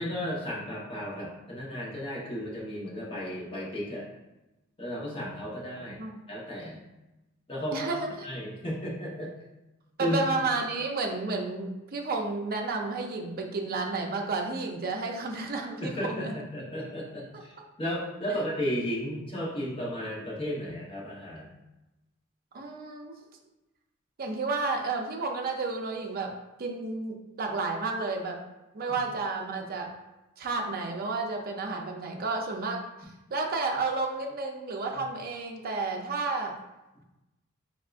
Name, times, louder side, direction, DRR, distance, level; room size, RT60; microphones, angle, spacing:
voice 1, 0.0-4.1 4.8-6.0 6.3-6.8 7.5-7.9 8.2-9.3 10.0-10.4 15.8-21.5 35.0-35.1, equal, 25° left, -6 dB, 1.0 m, -34 dB
voice 2, 7.7-8.1 10.0-16.3 18.3-18.4 22.5-23.1 24.2-26.3 26.6-28.4 28.7-29.9 30.4-32.8 33.3-36.5, right 3 dB, 45° right, 1 dB, 0.5 m, -31 dB
3.5 x 3.5 x 2.4 m, 0.99 s
head